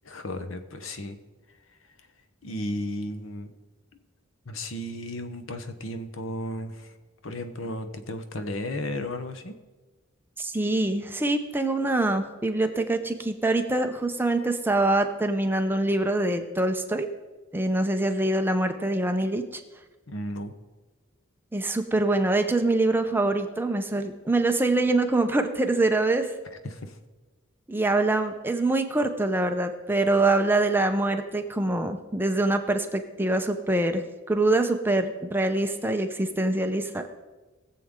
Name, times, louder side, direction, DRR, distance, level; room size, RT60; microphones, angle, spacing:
voice 1, 0.0-1.2 2.4-3.5 4.5-6.9 7.2-9.6 20.1-20.5 26.7-26.9, left 1 dB, 75° left, 9 dB, 1.0 m, -34 dB
voice 2, 10.4-17.1 17.5-19.6 21.5-26.3 27.7-37.0, right 2 dB, 10° right, 6 dB, 0.7 m, -24 dB
20.5 x 7.6 x 3.7 m, 1.2 s
head